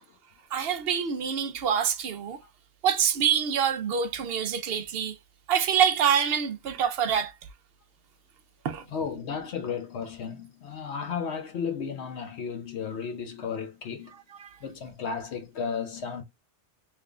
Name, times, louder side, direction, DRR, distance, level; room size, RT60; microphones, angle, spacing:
voice 1, 0.5-2.4 2.8-5.2 5.5-7.3 8.6-8.8 14.1-14.6, right 8 dB, 65° right, 0.8 m, -26 dB
voice 2, 8.9-14.1 14.6-16.2, left 6 dB, 70° left, 1.0 m, -34 dB
3.4 x 3.1 x 2.4 m
omnidirectional pair, 1.2 m